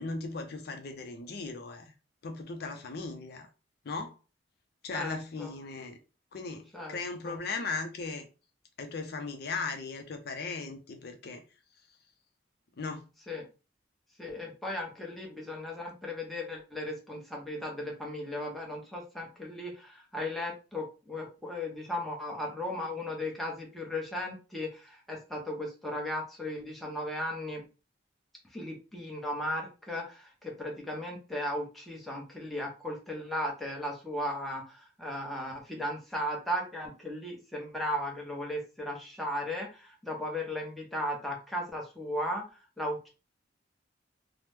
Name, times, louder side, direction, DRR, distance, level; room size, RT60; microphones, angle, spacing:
voice 1, 0.0-1.9 2.2-3.5 3.8-4.2 4.8-6.0 6.3-8.3 8.8-11.4 12.8-13.0, left 4 dB, 55° left, 0.5 m, -37 dB
voice 2, 4.9-5.5 6.7-7.0 7.2-7.4 13.3-13.5 14.2-27.6 28.5-43.1, left 1 dB, ahead, 0.7 m, -36 dB
2.9 x 2.0 x 3.3 m
head